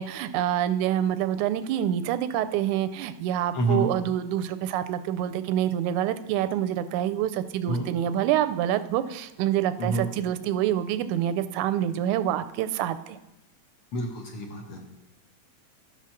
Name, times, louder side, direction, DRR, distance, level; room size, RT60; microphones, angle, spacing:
voice 1, 0.0-13.2, right 11 dB, 85° right, 11 dB, 2.0 m, -27 dB
voice 2, 3.5-3.9 7.7-7.9 9.8-10.1 13.9-14.8, right 2 dB, 55° left, 1 dB, 1.8 m, -27 dB
12.5 x 6.1 x 5.7 m, 0.99 s
omnidirectional pair, 3.4 m